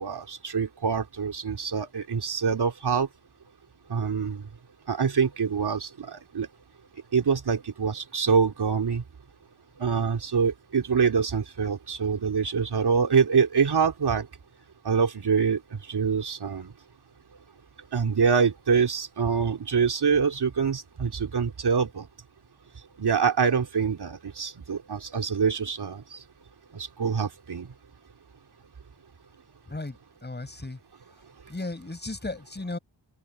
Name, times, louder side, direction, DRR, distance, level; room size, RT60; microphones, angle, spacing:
voice 1, 0.0-3.1 3.9-4.4 4.9-6.5 7.1-9.0 9.8-14.3 14.9-15.6 15.9-16.7 17.9-22.1 23.0-26.0 26.7-27.7, right 6 dB, 55° right, 3.3 m, -25 dB
voice 2, 30.2-30.8 31.5-32.8, left 2 dB, 20° left, 6.7 m, -35 dB
open air
wide cardioid pair, 115°, 46 cm